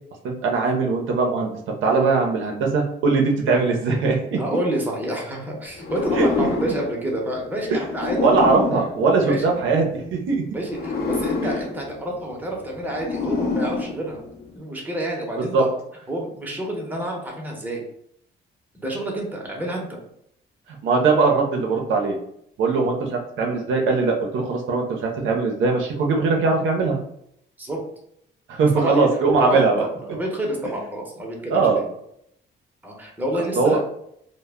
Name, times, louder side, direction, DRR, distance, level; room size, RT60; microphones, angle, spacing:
voice 1, 0.2-1.5 1.8-4.4 6.2-6.5 7.7-7.8 8.1-10.4 11.4-11.6 15.5-15.6 20.7-22.2 22.6-27.0 28.5-29.8 31.5-31.8 33.5-33.8, right 4 dB, 80° right, 1 dB, 0.6 m, -20 dB
voice 2, 4.3-8.9 9.2-9.6 10.5-14.2 14.5-15.7 16.1-17.8 18.7-20.0 22.6-22.8 27.6-27.8 28.7-29.1 29.4-31.9 32.8-33.8, right 1 dB, 10° right, -1 dB, 0.7 m, -29 dB
sound 1, 5.8-9.9 10.6-14.6, left 4 dB, 55° left, 0.6 m, -28 dB
2.1 x 2.0 x 3.4 m, 0.73 s
cardioid pair, 90°, 20 cm